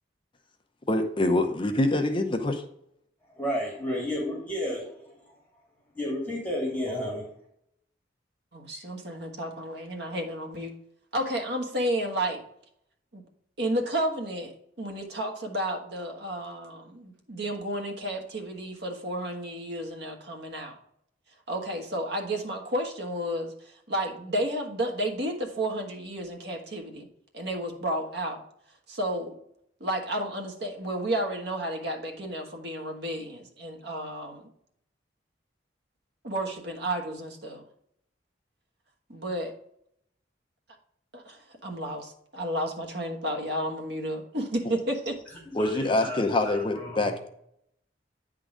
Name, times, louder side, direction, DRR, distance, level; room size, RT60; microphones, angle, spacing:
voice 1, 0.9-2.6 45.5-47.3, left 2 dB, 30° left, 5 dB, 0.7 m, -25 dB
voice 2, 3.2-5.4 5.9-7.3 45.4-47.1, equal, 10° left, -4 dB, 2.3 m, -32 dB
voice 3, 8.5-10.7 11.1-12.4 13.1-13.2 13.6-20.8 21.5-27.1 27.3-28.4 28.9-29.4 29.8-34.5 36.2-37.6 39.1-39.6 41.1-45.2, right 1 dB, 65° right, 3 dB, 1.4 m, -32 dB
9.5 x 3.9 x 4.9 m, 0.71 s
head